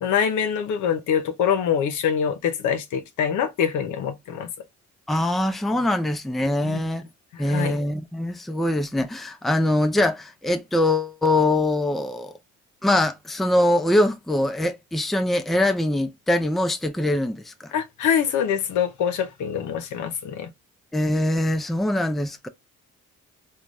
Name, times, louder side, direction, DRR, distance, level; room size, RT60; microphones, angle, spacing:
voice 1, 0.0-4.5 6.6-6.8 7.3-7.8 17.7-20.5, left 8 dB, 80° left, 0.8 m, -24 dB
voice 2, 5.1-7.0 7.4-12.3 12.8-17.7 20.9-22.5, left 1 dB, ahead, 0.4 m, -23 dB
3.9 x 2.3 x 3.1 m
cardioid pair, 90°, 30 cm